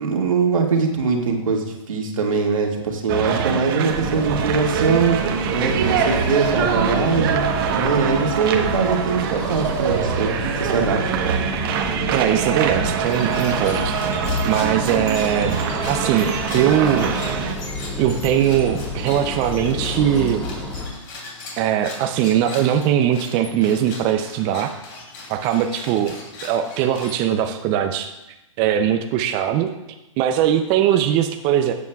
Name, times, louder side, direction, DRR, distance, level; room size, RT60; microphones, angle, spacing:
voice 1, 0.0-7.5 7.7-10.3 10.6-11.0, right 5 dB, 80° right, 0 dB, 2.0 m, -22 dB
sound 1, 3.1-17.5, right 7 dB, 45° right, 1.1 m, -24 dB
sound 2, 3.9-20.9, left 2 dB, 5° left, 2.0 m, -30 dB
voice 2, 12.1-14.0 14.4-15.6 15.9-17.1 18.0-20.4 21.6-24.7 25.3-28.1 28.6-29.7 30.2-31.7, right 10 dB, 25° right, 6 dB, 0.5 m, -20 dB
sound 3, 13.0-27.6, left 2 dB, 45° left, 2.9 m, -38 dB
14.0 x 8.3 x 2.3 m, 0.96 s
hypercardioid pair, 140°, 17 cm